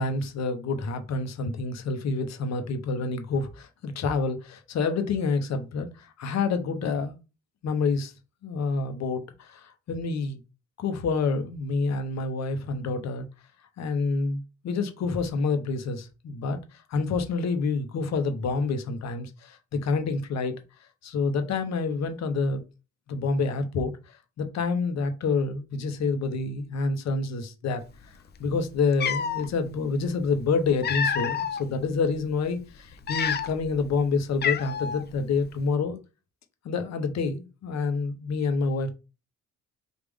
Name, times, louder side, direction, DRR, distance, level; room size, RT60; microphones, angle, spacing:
voice 1, 0.0-7.1 7.6-8.1 8.4-10.4 10.8-13.3 13.8-20.5 21.0-22.6 23.1-23.9 24.4-28.1 28.4-36.0 36.6-38.9, left 4 dB, 60° left, 0.8 m, -28 dB
Cat, 28.5-28.6 28.9-29.5 30.4-31.6 32.2-32.3 32.9-33.7 34.0-34.1 34.4-35.0, left 7 dB, 35° left, 0.4 m, -28 dB
3.5 x 2.4 x 3.5 m
cardioid pair, 90°, 30 cm